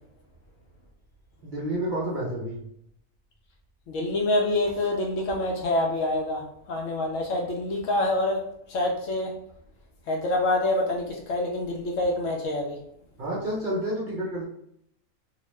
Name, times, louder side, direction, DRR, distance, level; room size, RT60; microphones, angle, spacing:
voice 1, 1.4-2.6 13.2-14.4, right 1 dB, 45° right, -6 dB, 0.7 m, -29 dB
voice 2, 3.9-6.4 6.7-8.4 8.7-9.3 10.1-12.8, left 2 dB, 70° left, 0 dB, 0.9 m, -26 dB
2.9 x 2.1 x 3.1 m, 0.72 s
omnidirectional pair, 1.5 m